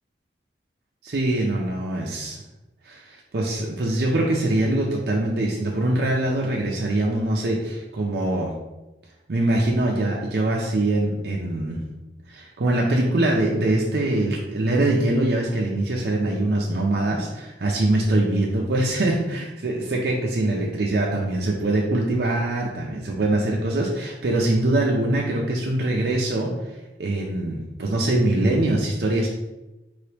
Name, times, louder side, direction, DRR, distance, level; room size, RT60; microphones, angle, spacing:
voice 1, 1.0-2.4 2.8-8.5 9.3-11.8 12.3-26.7 27.0-29.3, right 1 dB, 70° right, -2 dB, 0.6 m, -23 dB
4.5 x 3.3 x 2.9 m, 1.0 s
head